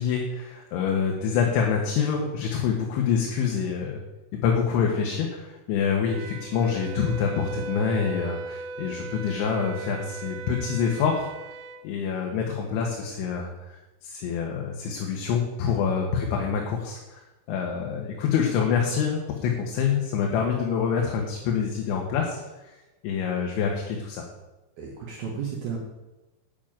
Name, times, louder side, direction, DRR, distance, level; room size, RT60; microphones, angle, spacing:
voice 1, 0.0-4.0 4.3-11.3 11.8-17.2 17.5-22.8 23.0-24.2, left 6 dB, 75° left, 0 dB, 3.5 m, -26 dB
Wind instrument woodwind instrument, 6.1-11.8, right 3 dB, 85° right, 3.2 m, -38 dB
voice 2, 24.8-25.8, right 6 dB, 65° right, -2 dB, 2.7 m, -33 dB
9.0 x 7.2 x 8.8 m, 1.1 s
omnidirectional pair, 5.6 m